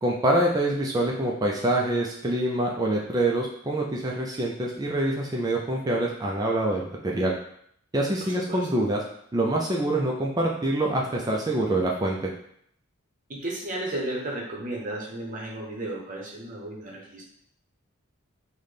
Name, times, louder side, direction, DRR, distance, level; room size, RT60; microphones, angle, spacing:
voice 1, 0.0-7.3 7.9-9.0 9.3-12.3, right 1 dB, 15° right, -1 dB, 0.3 m, -25 dB
voice 2, 8.2-8.7 13.3-17.3, right 1 dB, 40° right, -2 dB, 0.8 m, -34 dB
4.0 x 2.2 x 3.3 m, 0.69 s
head